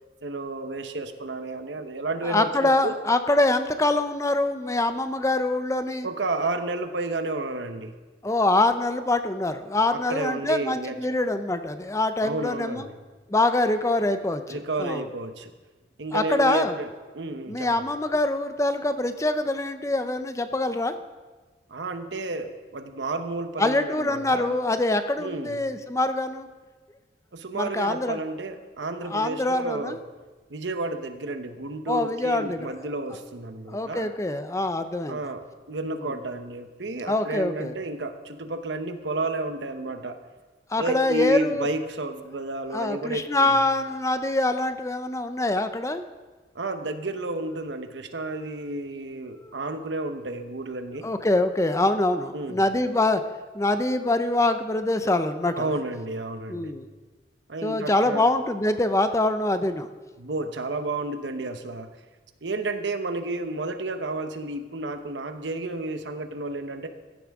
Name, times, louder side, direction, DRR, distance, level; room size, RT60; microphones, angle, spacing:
voice 1, 0.2-3.0 6.0-7.9 9.9-11.0 12.2-12.9 14.5-15.5 16.0-17.8 21.7-24.6 25.2-25.6 27.3-30.0 30.5-34.1 35.1-40.2 40.8-43.6 46.5-51.1 52.3-52.6 55.6-56.7 57.5-58.2 60.2-61.9 62.4-66.9, right 2 dB, 90° right, 7 dB, 1.0 m, -31 dB
voice 2, 2.2-6.1 8.2-12.9 13.3-15.1 16.1-16.8 17.5-20.9 23.6-26.5 27.5-28.2 29.1-30.0 31.9-32.7 33.7-35.2 35.9-36.1 37.1-37.7 40.7-41.7 42.7-46.0 49.3-49.6 51.0-53.2 53.5-55.7 56.5-56.9 57.6-59.9, left 2 dB, 15° left, 9 dB, 0.5 m, -24 dB
15.0 x 11.0 x 3.6 m, 1.3 s
head